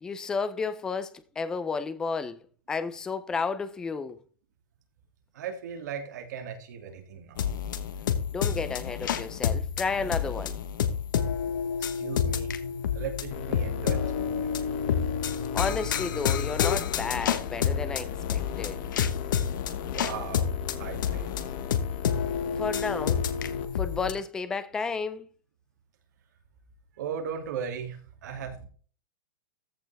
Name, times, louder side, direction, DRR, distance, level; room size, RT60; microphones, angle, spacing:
voice 1, 0.0-2.4 2.7-4.2 8.3-10.6 15.5-18.8 22.6-23.2 23.8-25.3, left 4 dB, 5° left, 0.4 m, -32 dB
voice 2, 5.3-7.5 11.8-12.6 12.9-14.6 19.9-21.4 27.0-28.7, right 7 dB, 55° right, 2.5 m, -37 dB
sound 1, 7.4-24.1, left 8 dB, 70° left, 1.2 m, -29 dB
sound 2, 13.3-23.7, left 8 dB, 30° left, 0.9 m, -38 dB
14.5 x 5.6 x 3.4 m
supercardioid pair, 180°, 11 cm